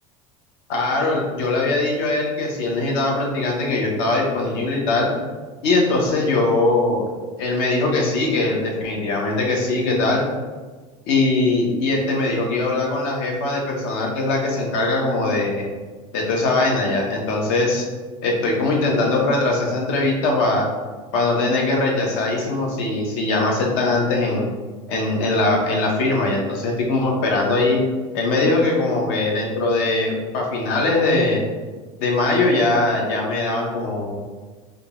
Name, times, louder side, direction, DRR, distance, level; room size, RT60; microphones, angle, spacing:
voice 1, 0.7-5.1 5.6-7.1 7.4-10.2 11.1-15.7 16.1-17.8 18.2-20.7 21.1-24.5 24.9-27.8 28.1-31.4 32.0-34.1, left 2 dB, 65° left, 0 dB, 0.9 m, -21 dB
3.8 x 2.3 x 3.6 m, 1.3 s
cardioid pair, 175°, 14 cm